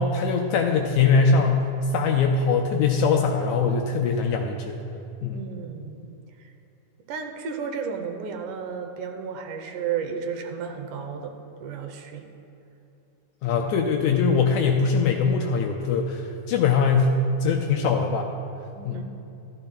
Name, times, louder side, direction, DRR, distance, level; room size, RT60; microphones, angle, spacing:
voice 1, 0.0-1.7 1.9-4.8 5.2-5.4 13.4-18.3 18.8-19.0, left 5 dB, 80° left, 2 dB, 1.7 m, -22 dB
voice 2, 5.2-6.1 7.1-11.3 11.6-12.2 13.6-13.7 18.8-19.0, right 6 dB, 80° right, 5 dB, 2.3 m, -33 dB
14.5 x 12.5 x 2.3 m, 2.7 s
omnidirectional pair, 3.7 m